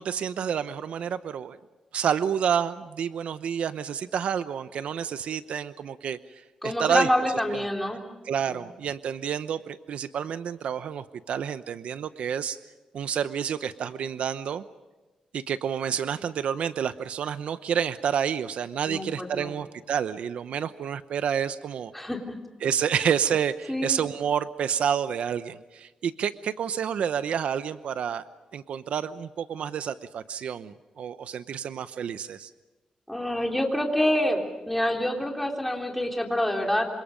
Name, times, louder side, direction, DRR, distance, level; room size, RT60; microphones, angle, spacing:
voice 1, 0.0-1.6 1.9-6.2 6.6-7.1 7.5-7.6 8.3-12.6 12.9-14.6 15.3-21.9 22.6-28.2 28.5-32.5, right 8 dB, 70° right, 13 dB, 0.8 m, -29 dB
voice 2, 6.6-8.0 8.5-8.6 18.9-19.6 21.9-22.4 23.7-24.0 33.1-36.9, left 1 dB, 5° left, 2 dB, 3.5 m, -27 dB
27.5 x 26.0 x 5.2 m, 1.2 s
wide cardioid pair, 140°, 2 cm